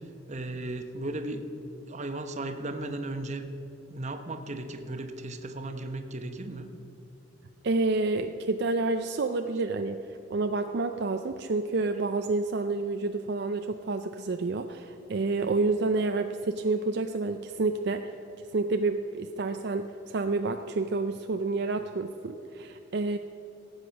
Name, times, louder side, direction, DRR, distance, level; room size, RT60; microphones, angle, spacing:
voice 1, 0.3-1.4 1.9-3.5 3.9-6.7, right 2 dB, 35° right, 7 dB, 1.0 m, -35 dB
voice 2, 7.6-10.0 10.3-18.1 18.5-23.2, right 3 dB, 55° right, 6 dB, 0.5 m, -29 dB
17.5 x 8.1 x 5.8 m, 2.9 s
head